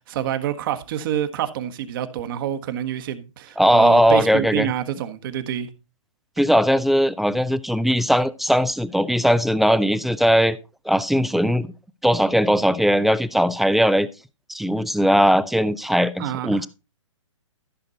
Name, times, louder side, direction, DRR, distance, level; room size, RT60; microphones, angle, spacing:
voice 1, 0.1-5.7 16.2-16.6, right 10 dB, 45° right, 1.5 m, -27 dB
voice 2, 3.6-4.7 6.4-10.6 10.9-11.7 12.0-14.1 14.5-16.7, equal, ahead, 0.4 m, -19 dB
14.5 x 6.6 x 4.0 m
figure-of-eight pair, 130°, 16 cm